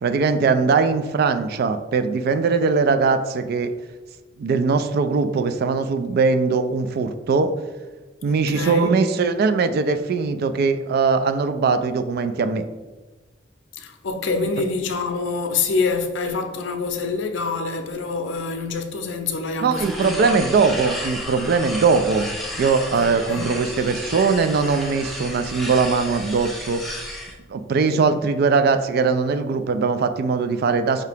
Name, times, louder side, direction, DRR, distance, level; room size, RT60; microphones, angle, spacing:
voice 1, 0.0-3.7 4.4-7.5 8.2-12.6 19.6-27.0 27.5-31.1, right 4 dB, 55° right, 0.3 m, -21 dB
voice 2, 8.3-9.0 13.8-20.3 22.9-23.5 27.9-28.2, left 4 dB, 75° left, 0.5 m, -26 dB
sound 1, 19.7-27.3, equal, ahead, 0.6 m, -33 dB
4.9 x 2.8 x 3.4 m
head